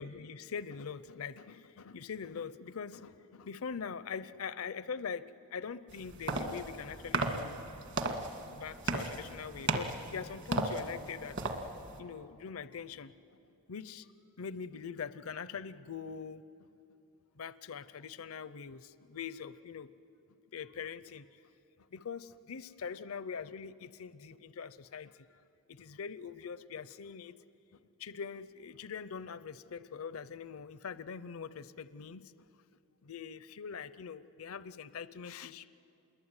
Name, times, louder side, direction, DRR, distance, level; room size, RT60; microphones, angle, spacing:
voice 1, 0.0-7.6 8.5-11.4 12.0-13.1 13.7-14.1 14.4-16.7 17.4-19.9 20.5-21.3 21.9-25.4 25.7-27.4 27.7-32.5 33.0-35.7, left 6 dB, 65° left, 15 dB, 0.6 m, -43 dB
sound 1, 5.9-12.0, right 2 dB, 55° right, 1.9 m, -36 dB
27.5 x 22.5 x 9.7 m, 2.8 s
head